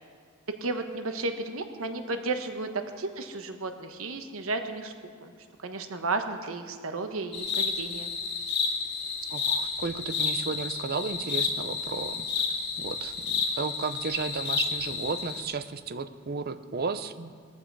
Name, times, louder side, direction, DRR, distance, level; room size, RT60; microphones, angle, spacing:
voice 1, 0.6-4.9 5.2-5.3 5.6-8.1, right 3 dB, 70° right, 6 dB, 1.1 m, -33 dB
sound 1, 7.3-15.4, left 5 dB, 50° left, 2.5 m, -31 dB
voice 2, 9.3-12.4 12.8-17.3, right 4 dB, 45° right, 11 dB, 0.7 m, -33 dB
19.5 x 14.0 x 4.7 m, 2.1 s
head